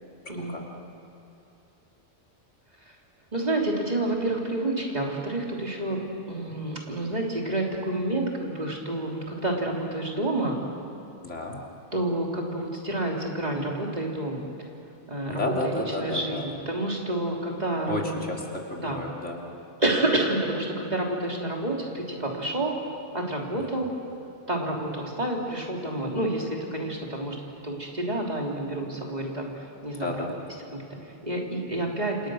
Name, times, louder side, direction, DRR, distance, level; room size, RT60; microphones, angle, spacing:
voice 1, 0.3-0.6 11.2-11.6 15.3-16.4 17.9-19.4 23.6-23.7 30.0-30.4, left 2 dB, 85° left, -1 dB, 3.5 m, -31 dB
voice 2, 3.3-10.6 11.9-14.4 15.1-18.1 18.8-19.0 19.8-22.8 23.1-23.9 24.5-27.4 27.6-30.2 30.7-32.3, right 1 dB, 35° right, -1 dB, 3.5 m, -29 dB
28.5 x 28.0 x 6.4 m, 2.7 s
omnidirectional pair, 1.2 m